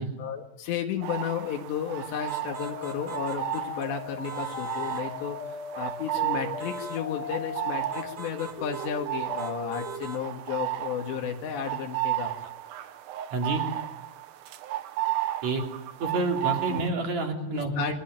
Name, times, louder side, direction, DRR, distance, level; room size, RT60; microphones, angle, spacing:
voice 1, 0.2-5.4 5.8-12.3 16.7-16.8 17.5-18.0, left 8 dB, 85° left, 2 dB, 4.1 m, -33 dB
sound 1, 1.0-16.9, right 16 dB, 70° right, 2.8 m, -34 dB
sound 2, 2.3-3.9 4.2-5.1 6.6-7.0 7.9-8.9 9.4-10.2, right 5 dB, 85° right, 0.8 m, -42 dB
sound 3, 2.5-8.1 8.6-10.1, left 5 dB, 40° left, 2.6 m, -38 dB
voice 2, 13.3-13.6 15.4-15.6 16.0-18.0, right 3 dB, 45° right, 3 dB, 4.1 m, -28 dB
27.0 x 22.0 x 9.0 m, 0.95 s
omnidirectional pair, 4.9 m